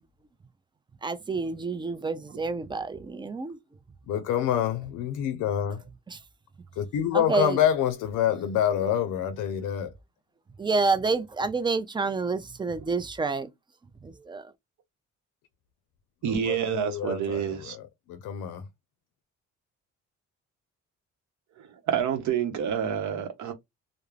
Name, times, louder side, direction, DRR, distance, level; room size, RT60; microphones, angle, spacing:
voice 1, 1.0-3.6 6.1-6.2 7.1-7.6 10.6-13.5 14.0-14.4, right 4 dB, 15° right, 0.3 m, -28 dB
voice 2, 4.1-5.8 6.8-9.9 16.3-17.8 18.1-18.6, left 10 dB, 85° left, 0.5 m, -27 dB
voice 3, 16.2-17.8 21.6-23.5, right 8 dB, 70° right, 0.7 m, -28 dB
2.3 x 2.0 x 3.1 m
cardioid pair, 90°, 30 cm